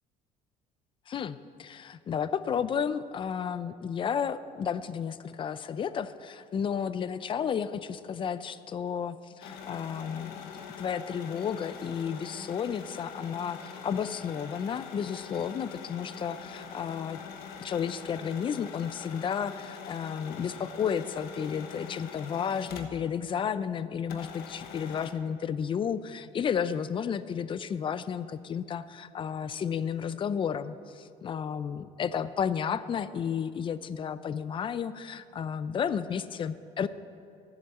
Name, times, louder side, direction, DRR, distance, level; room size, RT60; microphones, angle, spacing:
voice 1, 1.1-17.2 17.6-36.9, left 7 dB, 35° left, 14 dB, 0.5 m, -32 dB
sound 1, 9.4-23.2 23.5-23.6 24.1-25.1, left 6 dB, 80° left, 1.2 m, -44 dB
11.5 x 7.3 x 7.7 m, 2.5 s
cardioid pair, 105°, 15 cm